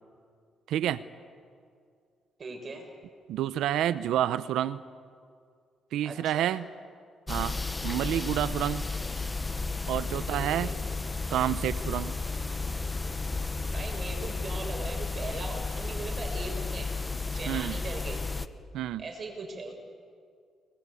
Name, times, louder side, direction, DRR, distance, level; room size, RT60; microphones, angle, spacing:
voice 1, 0.7-1.0 3.3-4.8 5.9-6.7 7.3-7.6 7.8-8.9 9.9-10.8 11.3-12.1 17.5-17.8 18.7-19.0, right 11 dB, 85° right, 15 dB, 0.8 m, -29 dB
voice 2, 2.4-2.9 6.0-6.5 10.3-10.8 13.7-16.9 17.3-18.2 19.0-19.7, right 3 dB, 40° right, 4 dB, 6.7 m, -39 dB
sound 1, 7.3-18.5, left 3 dB, 20° left, 1.2 m, -33 dB
29.5 x 21.5 x 8.5 m, 2.2 s
cardioid pair, 90°, 0 cm